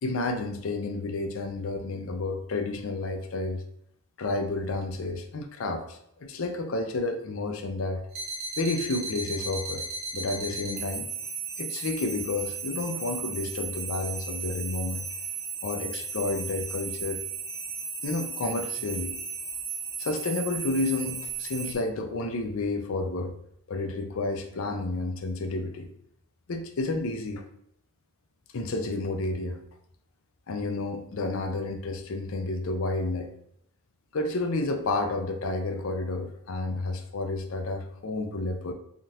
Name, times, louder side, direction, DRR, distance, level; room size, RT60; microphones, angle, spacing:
voice 1, 0.0-3.6 4.2-8.1 8.6-9.8 10.1-11.1 11.6-15.0 15.6-17.2 18.0-19.1 20.0-23.3 23.7-25.9 26.5-27.4 28.5-29.6 30.5-33.3 34.1-38.7, left 2 dB, 65° left, 5 dB, 0.5 m, -30 dB
sound 1, 8.1-21.7, right 5 dB, 45° right, 0.8 m, -35 dB
3.5 x 2.4 x 2.7 m, 0.71 s
head